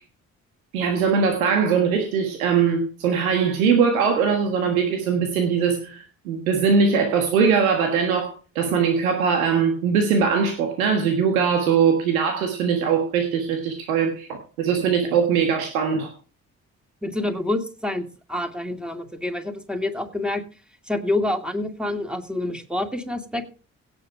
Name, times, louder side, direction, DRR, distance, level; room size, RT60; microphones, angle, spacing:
voice 1, 0.7-14.3 14.6-16.1, right 6 dB, 85° right, 4 dB, 1.5 m, -21 dB
voice 2, 17.0-20.4 20.9-23.5, left 2 dB, ahead, 5 dB, 2.5 m, -27 dB
17.0 x 6.0 x 4.9 m, 0.36 s
hypercardioid pair, 40°, 41 cm